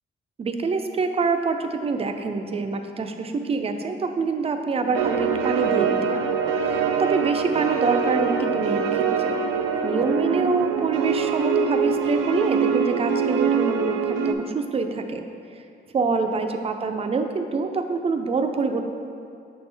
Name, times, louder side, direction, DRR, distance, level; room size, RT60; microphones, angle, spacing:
voice 1, 0.4-9.3 9.8-15.2 15.9-18.9, right 4 dB, 30° right, 6 dB, 0.4 m, -26 dB
sound 1, 4.9-14.3, right 6 dB, 90° right, 0.4 m, -24 dB
6.4 x 4.3 x 3.4 m, 2.5 s
cardioid pair, 90°, 20 cm